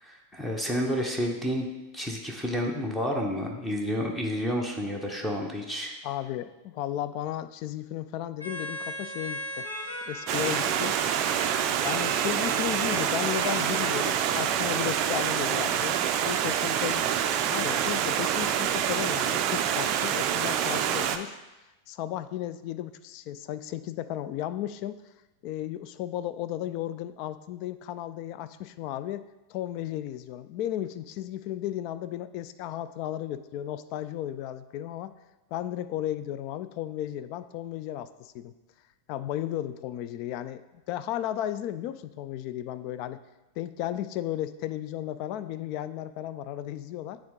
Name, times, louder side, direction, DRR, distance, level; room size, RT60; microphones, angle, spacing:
voice 1, 0.0-5.9, equal, 10° left, 1 dB, 0.8 m, -30 dB
voice 2, 6.0-9.7 10.1-11.3 11.8-16.0 16.2-21.4 21.9-25.0 25.4-29.2 29.5-35.1 35.5-38.5 39.1-43.2 43.6-47.2, left 12 dB, 45° left, 13 dB, 0.3 m, -34 dB
sound 1, 8.4-15.2, right 1 dB, 80° left, 1.1 m, -38 dB
Stream, 10.3-21.2, right 9 dB, 40° right, 0.4 m, -27 dB
8.7 x 3.5 x 3.6 m, 1.0 s
figure-of-eight pair, 90°, 0 cm